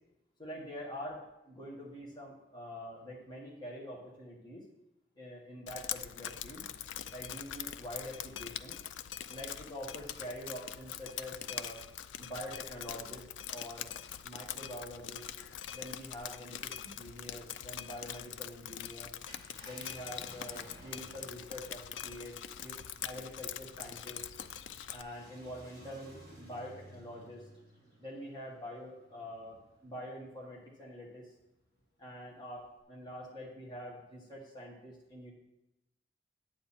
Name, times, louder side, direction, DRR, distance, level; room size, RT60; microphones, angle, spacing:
voice 1, 0.4-4.6 5.1-6.6 7.1-8.8 9.3-11.8 12.1-13.9 14.2-15.3 15.7-19.1 19.6-22.3 22.6-24.3 24.9-27.5 28.0-31.3 32.0-35.3, equal, 25° left, -4 dB, 1.7 m, -45 dB
Drip, 5.7-25.0, left 10 dB, 80° left, 0.4 m, -43 dB
Car, 19.3-29.9 30.4-30.5 32.6-32.8, right 1 dB, 55° left, 3.8 m, -57 dB
9.2 x 8.3 x 4.3 m, 0.91 s
head